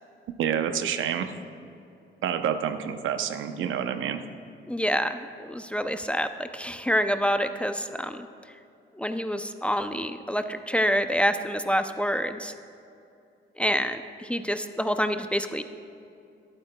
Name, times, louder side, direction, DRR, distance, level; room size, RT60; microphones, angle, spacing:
voice 1, 0.4-1.3 2.2-4.2, right 8 dB, 75° right, 9 dB, 0.7 m, -28 dB
voice 2, 4.7-8.3 9.0-12.5 13.6-15.6, equal, 5° left, 8 dB, 0.5 m, -27 dB
22.0 x 8.9 x 2.3 m, 2.6 s
cardioid pair, 90°, 20 cm